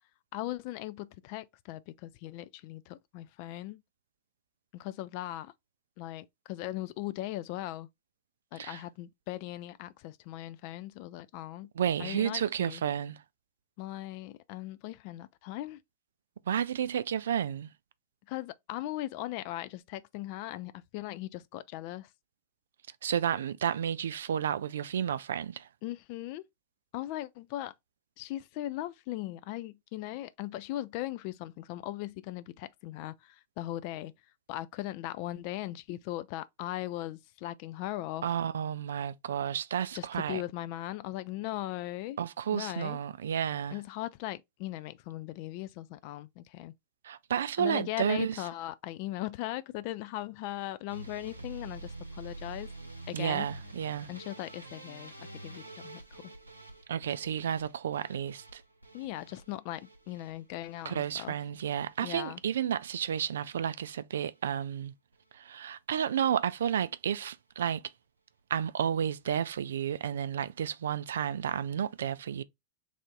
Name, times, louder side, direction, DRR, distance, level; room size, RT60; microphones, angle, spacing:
voice 1, 0.3-3.8 4.7-5.5 6.0-7.9 8.5-11.7 12.0-12.8 13.8-15.8 18.3-22.1 25.8-26.4 26.9-27.7 28.2-34.1 34.5-38.2 39.9-42.2 42.5-43.0 43.7-46.7 47.6-52.7 53.1-53.5 54.1-56.2 58.9-61.3 62.0-62.4, left 15 dB, 45° left, 0.3 m, -39 dB
voice 2, 11.8-13.2 16.5-17.7 23.0-25.7 38.2-40.4 42.2-43.8 47.0-48.4 53.1-54.1 56.9-58.6 60.9-64.9 65.3-67.8 68.5-72.4, right 9 dB, 65° right, 0.3 m, -31 dB
sound 1, 50.9-63.0 63.3-63.9 64.2-64.8 65.1-65.4 65.7-65.8 66.0-66.1, right 2 dB, 85° right, 0.7 m, -48 dB
3.4 x 2.5 x 3.7 m
figure-of-eight pair, 90°, 0 cm